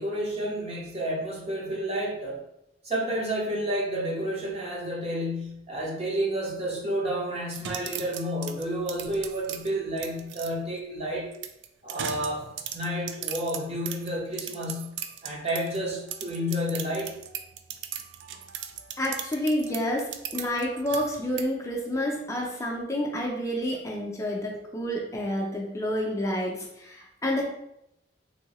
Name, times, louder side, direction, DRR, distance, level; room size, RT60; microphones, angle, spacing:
voice 1, 0.0-2.4 2.8-11.3 11.8-12.5 12.7-15.0 15.2-17.1, equal, 35° right, -2 dB, 0.7 m, -30 dB
sound 1, 7.5-10.5 11.3-15.8 16.1-21.4, right 9 dB, 75° right, 0.3 m, -38 dB
voice 2, 19.0-27.5, equal, 15° left, -1 dB, 0.5 m, -29 dB
3.2 x 2.7 x 2.9 m, 0.82 s
head